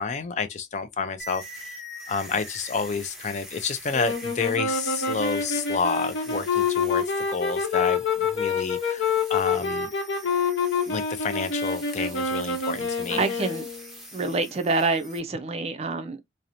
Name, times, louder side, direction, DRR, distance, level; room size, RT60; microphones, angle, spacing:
voice 1, 0.0-1.8 2.1-9.9 10.9-13.2, left 5 dB, 40° left, 0.4 m, -30 dB
sound 1, 1.2-15.2, equal, ahead, 0.7 m, -44 dB
sound 2, 3.9-14.0, left 5 dB, 80° left, 0.7 m, -27 dB
voice 2, 13.1-13.6 14.1-16.2, right 3 dB, 35° right, 0.4 m, -26 dB
2.8 x 2.0 x 2.4 m
head